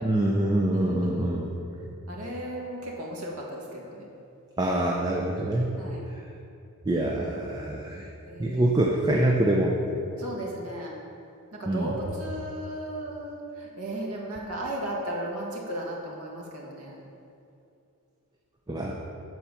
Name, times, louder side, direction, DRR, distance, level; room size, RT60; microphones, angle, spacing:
voice 1, 0.0-1.5 4.6-5.8 6.9-8.1 8.4-9.7 11.7-12.0 18.7-18.9, right 1 dB, 20° right, -1 dB, 0.6 m, -25 dB
voice 2, 0.7-1.3 2.1-4.1 5.8-6.1 7.5-7.7 8.2-8.7 10.2-10.9 11.5-17.0, right 1 dB, 80° right, -3 dB, 1.8 m, -36 dB
8.7 x 4.6 x 7.0 m, 2.6 s
head